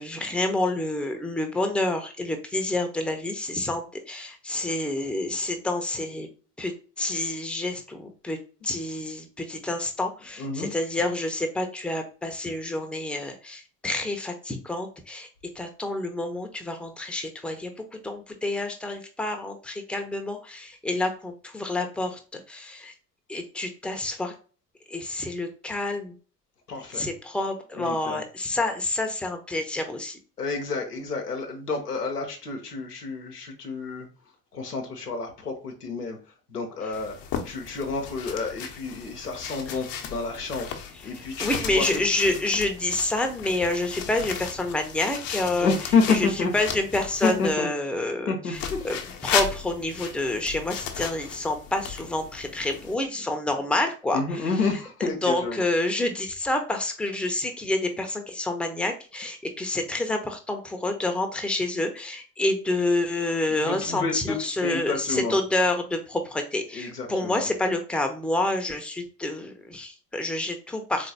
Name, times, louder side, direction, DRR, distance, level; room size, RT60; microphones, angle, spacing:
voice 1, 0.0-6.3 6.6-8.4 8.6-15.3 15.5-22.9 23.3-24.3 24.9-26.2 26.9-30.2 39.7-39.8 41.2-45.7 46.1-46.3 46.5-54.4 55.2-71.1, left 2 dB, ahead, 5 dB, 0.7 m, -28 dB
voice 2, 10.4-10.7 26.7-27.1 27.8-28.2 30.4-34.1 34.5-36.2 36.5-37.2 37.4-40.7 41.0-42.0 45.6-46.5 47.2-47.7 48.3-48.9 54.1-55.6 63.5-64.4 64.6-65.4 66.7-67.5, left 4 dB, 90° left, 3 dB, 0.8 m, -29 dB
sound 1, 36.9-47.5 48.5-53.0, left 7 dB, 45° left, 0.8 m, -35 dB
3.8 x 3.3 x 2.7 m, 0.37 s
figure-of-eight pair, 55°, 46 cm